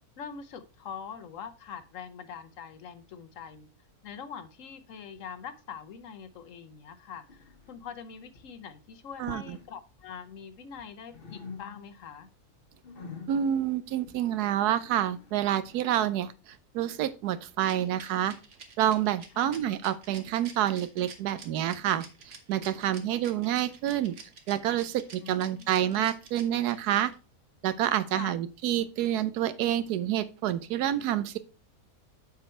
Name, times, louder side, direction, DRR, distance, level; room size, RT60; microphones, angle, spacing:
voice 1, 0.2-3.7 4.0-12.3 19.3-19.7 25.2-25.7 28.1-28.4, left 7 dB, 65° left, 11 dB, 1.0 m, -43 dB
sound 1, 7.3-8.6 9.1-9.7 10.0-10.9 11.1-12.1 12.4-16.1, left 4 dB, 40° left, 1.1 m, -47 dB
voice 2, 9.2-9.6 13.3-18.4 18.8-22.0 22.5-24.1 24.5-27.1 27.6-31.4, right 11 dB, 85° right, 13 dB, 1.2 m, -28 dB
Rattle, 17.6-27.1, right 5 dB, 55° right, 1.3 m, -48 dB
7.5 x 4.8 x 4.3 m, 0.33 s
omnidirectional pair, 1.6 m